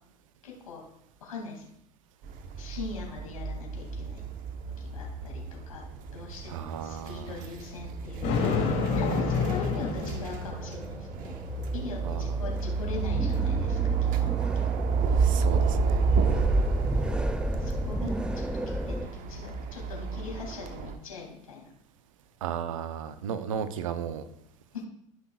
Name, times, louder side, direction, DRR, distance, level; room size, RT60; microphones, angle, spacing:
voice 1, 0.4-0.8 1.2-1.7 2.6-4.2 4.8-5.9 6.1-11.4 11.7-14.8 17.6-21.7 24.7-24.8, left 4 dB, 85° left, -1 dB, 2.4 m, -41 dB
sound 1, 2.2-21.0, right 5 dB, 55° right, 1.0 m, -31 dB
voice 2, 6.5-7.4 12.0-12.4 15.1-16.0 22.4-24.2, right 8 dB, 75° right, 12 dB, 0.7 m, -35 dB
sound 2, 8.1-19.1, equal, 5° right, 0.5 m, -33 dB
Thunder, 8.2-10.7, left 4 dB, 55° left, 2.7 m, -28 dB
14.5 x 6.0 x 2.4 m, 0.73 s
hypercardioid pair, 75°, 17 cm